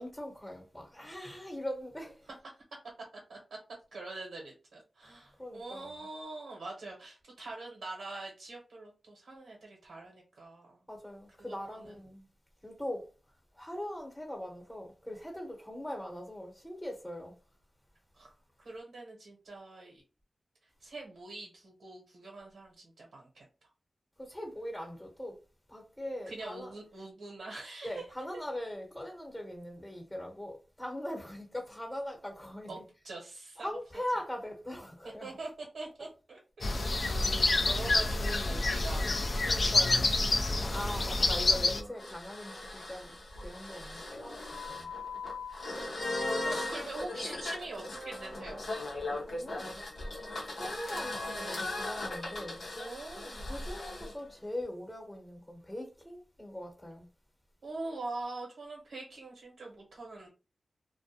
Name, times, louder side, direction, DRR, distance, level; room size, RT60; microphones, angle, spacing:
voice 1, 0.0-2.3 5.0-5.1 5.4-5.9 10.9-12.3 12.6-13.1 13.5-17.3 24.2-25.4 25.7-26.7 27.8-32.8 33.6-35.3 39.5-40.1 40.5-43.1 43.4-44.9 49.2-49.8 50.4-52.6 53.5-57.1, left 1 dB, 15° left, 0.9 m, -41 dB
voice 2, 3.9-10.8 11.4-11.9 18.1-18.3 18.6-20.0 20.8-23.4 26.3-28.0 32.7-33.7 35.2-35.5 35.7-39.1 44.9-45.0 46.0-48.6 50.2-50.5 52.8-53.5 57.6-60.3, right 2 dB, 85° right, 0.8 m, -44 dB
sound 1, 36.6-41.8, left 2 dB, 60° left, 0.4 m, -28 dB
sound 2, 40.4-54.1, left 2 dB, 75° left, 0.7 m, -38 dB
2.4 x 2.1 x 2.7 m
cardioid pair, 45°, 0 cm